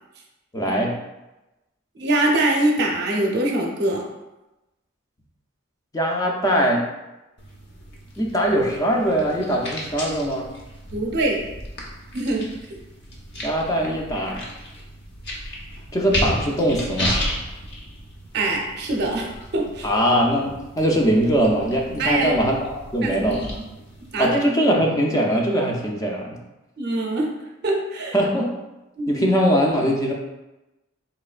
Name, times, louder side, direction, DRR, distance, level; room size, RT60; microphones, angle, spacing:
voice 1, 0.5-1.0 5.9-6.8 8.2-10.5 13.4-14.4 15.9-17.2 19.8-23.4 24.2-26.4 28.1-28.5 29.1-30.1, equal, 15° left, -1 dB, 0.4 m, -21 dB
voice 2, 2.0-4.0 10.9-11.4 12.1-12.5 18.3-19.9 22.0-22.4 23.0-23.6 24.1-24.4 26.8-27.3 27.6-28.1 29.0-29.3, right 2 dB, 55° right, 0 dB, 0.7 m, -23 dB
sound 1, 7.4-24.3, equal, 60° left, 0.8 m, -33 dB
4.1 x 3.1 x 2.4 m, 0.99 s
head